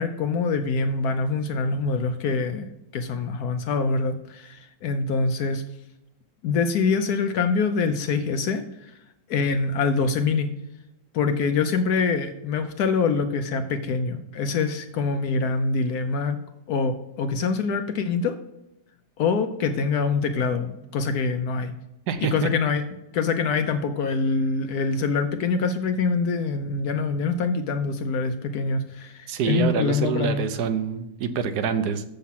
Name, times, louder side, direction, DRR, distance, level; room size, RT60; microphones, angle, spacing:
voice 1, 0.0-2.7 2.9-5.6 6.4-8.9 9.3-10.5 11.1-16.4 16.7-18.4 19.2-21.7 22.2-22.8 23.1-30.4, left 4 dB, 70° left, 8 dB, 1.0 m, -25 dB
voice 2, 22.1-22.5 29.3-32.0, right 7 dB, 70° right, 10 dB, 1.1 m, -26 dB
7.1 x 6.5 x 5.7 m, 0.90 s
omnidirectional pair, 2.0 m